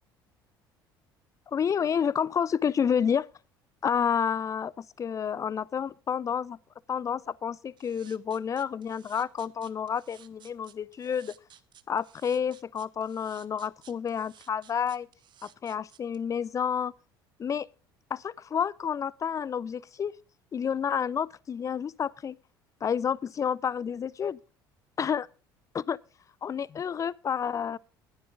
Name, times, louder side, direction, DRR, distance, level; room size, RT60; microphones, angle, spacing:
voice 1, 1.5-3.3 3.8-6.6 6.9-11.4 11.9-15.1 15.4-16.9 17.4-17.7 18.1-20.2 20.5-22.4 22.8-24.4 25.0-25.3 25.7-26.0 26.4-27.8, left 7 dB, 25° left, 0.4 m, -30 dB
sound 1, 7.8-16.2, right 10 dB, 40° right, 0.8 m, -56 dB
19.5 x 7.3 x 3.6 m
figure-of-eight pair, 60°, 12 cm